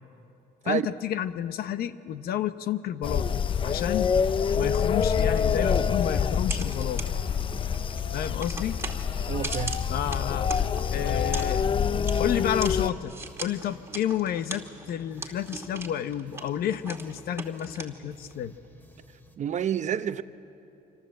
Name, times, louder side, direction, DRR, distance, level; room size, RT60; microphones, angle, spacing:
voice 1, 0.7-4.1 4.6-7.1 8.1-8.8 9.1-9.2 9.9-10.5 10.9-11.7 12.2-18.5, left 10 dB, 65° left, 1.0 m, -31 dB
sound 1, 3.0-12.9, left 7 dB, 30° left, 0.5 m, -26 dB
sound 2, 5.3-18.4, right 3 dB, 15° right, 2.5 m, -41 dB
voice 2, 9.3-9.7 19.4-20.2, right 9 dB, 45° right, 0.8 m, -28 dB
sound 3, 12.4-19.4, left 2 dB, 10° left, 2.6 m, -54 dB
26.0 x 25.5 x 7.8 m
cardioid pair, 110°, 17 cm